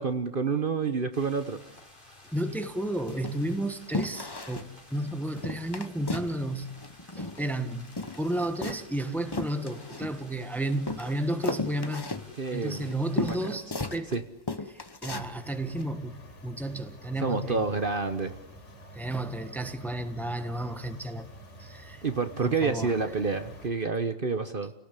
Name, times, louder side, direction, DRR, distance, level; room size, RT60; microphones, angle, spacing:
voice 1, 0.0-1.6 12.4-13.4 14.1-14.2 17.2-18.4 22.0-24.7, right 4 dB, 45° right, 9 dB, 1.2 m, -29 dB
sound 1, 1.1-13.6, left 1 dB, 35° left, 4.3 m, -53 dB
voice 2, 2.3-6.7 7.1-12.1 12.5-14.2 14.7-17.6 18.9-21.3 21.6-22.0 22.4-23.0, right 1 dB, ahead, 9 dB, 1.3 m, -32 dB
sound 2, 2.5-2.7 3.1-3.6 3.9-4.7 5.0-5.1 5.4-6.4 6.6-7.6 7.9-10.4 10.9-14.2 14.5-15.3 15.7-15.9, left 2 dB, 20° left, 1.0 m, -35 dB
sound 3, 15.0-23.7, equal, 55° left, 5.5 m, -48 dB
29.5 x 18.0 x 8.3 m, 0.82 s
omnidirectional pair, 1.4 m